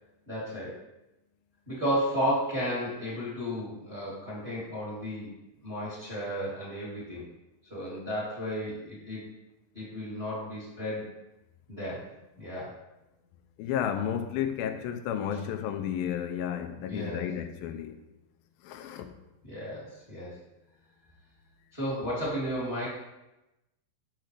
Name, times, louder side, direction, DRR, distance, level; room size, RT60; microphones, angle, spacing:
voice 1, 0.3-0.8 1.7-5.4 5.6-7.2 7.7-9.3 9.7-11.1 11.7-12.1 12.4-12.8 16.9-17.3 19.5-20.4 21.7-22.9, equal, 20° right, 1.3 m, -33 dB
voice 2, 13.6-18.0 18.6-19.1, left 9 dB, 85° left, 2.3 m, -32 dB
6.4 x 6.3 x 3.2 m
omnidirectional pair, 4.1 m